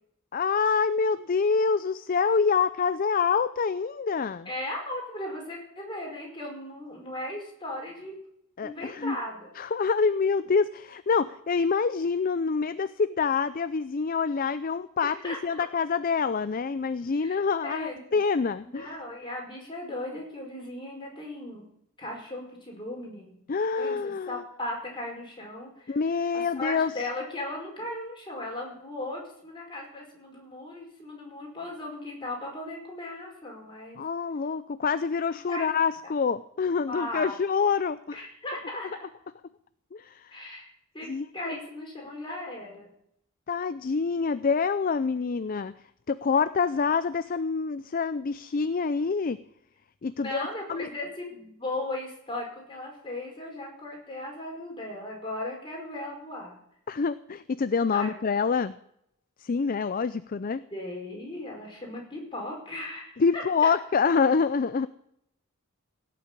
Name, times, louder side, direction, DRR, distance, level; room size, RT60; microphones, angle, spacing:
voice 1, 0.3-4.5 8.6-9.2 9.6-18.9 23.5-24.4 25.9-26.9 34.0-38.2 39.9-40.4 41.1-41.6 43.5-45.7 46.1-49.4 50.0-50.9 56.9-58.7 59.4-60.6 63.2-64.9, left 5 dB, 40° left, 14 dB, 0.4 m, -26 dB
voice 2, 4.4-8.2 8.6-9.5 15.0-15.7 17.2-18.2 18.6-21.6 22.0-23.4 23.8-26.0 26.3-34.0 35.5-35.7 36.0-36.2 36.9-37.4 38.1-39.0 40.3-40.7 40.9-41.1 41.3-42.9 50.1-56.6 57.9-58.1 60.7-63.7, left 1 dB, 20° left, 0 dB, 5.0 m, -37 dB
17.5 x 6.9 x 8.9 m, 0.75 s
head